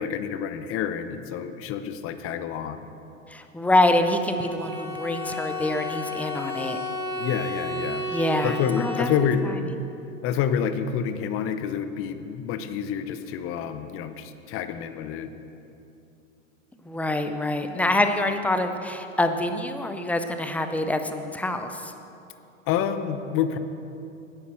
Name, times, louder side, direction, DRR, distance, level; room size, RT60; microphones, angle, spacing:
voice 1, 0.0-2.9 7.2-8.1 8.4-9.4 10.2-15.3 22.7-23.6, left 8 dB, 35° left, 10 dB, 0.8 m, -28 dB
voice 2, 3.3-6.8 8.1-9.1 16.9-21.7, left 1 dB, 5° left, 7 dB, 0.4 m, -25 dB
Bowed string instrument, 4.3-9.5, left 1 dB, 55° right, 3.6 m, -32 dB
9.9 x 9.6 x 7.6 m, 2.8 s
hypercardioid pair, 115°, 40 cm